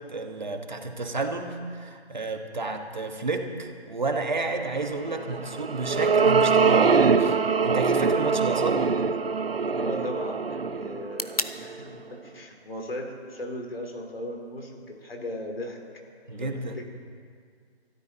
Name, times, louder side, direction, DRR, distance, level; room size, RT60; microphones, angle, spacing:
voice 1, 0.1-6.9 7.2-7.4 7.6-8.8 16.3-16.8, right 3 dB, 45° right, 4 dB, 1.4 m, -31 dB
sound 1, 5.3-11.8, right 5 dB, 65° right, 0.8 m, -23 dB
sound 2, 7.1-15.1, left 2 dB, 35° left, 0.5 m, -42 dB
voice 2, 9.7-15.8 16.3-16.9, left 1 dB, 60° left, 2 dB, 3.2 m, -37 dB
21.0 x 13.0 x 4.1 m, 2.1 s
figure-of-eight pair, 175°, 32 cm